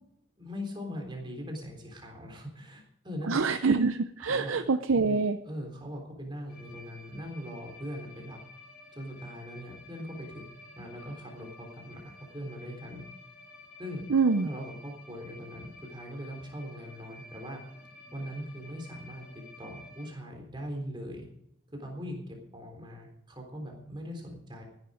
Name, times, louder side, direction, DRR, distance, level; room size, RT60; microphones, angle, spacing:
voice 1, 0.4-3.4 4.2-4.6 5.4-8.4 8.9-10.4 10.8-13.0 13.8-17.6 18.1-21.3 21.7-24.6, equal, 25° right, 1 dB, 3.6 m, -41 dB
voice 2, 3.3-5.4 14.1-14.5, right 4 dB, 75° right, 9 dB, 0.6 m, -25 dB
sound 1, 6.5-20.1, left 2 dB, 45° left, 3.0 m, -52 dB
15.5 x 11.0 x 5.0 m, 0.74 s
head